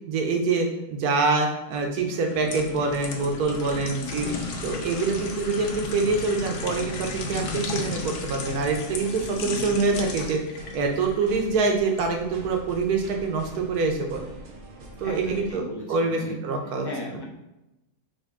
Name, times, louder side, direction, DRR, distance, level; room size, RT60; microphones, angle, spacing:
voice 1, 0.1-4.3 4.6-14.3 15.0-17.2, right 4 dB, 75° right, 3 dB, 1.3 m, -25 dB
sound 1, 2.1-12.1 12.5-12.7, left 4 dB, 85° left, 1.2 m, -35 dB
voice 2, 3.7-4.1 15.0-16.3 16.8-17.2, equal, 35° left, -2 dB, 0.4 m, -36 dB
sound 2, 4.2-15.5, right 2 dB, 50° right, 0.6 m, -44 dB
5.3 x 2.5 x 3.6 m, 0.93 s
omnidirectional pair, 1.6 m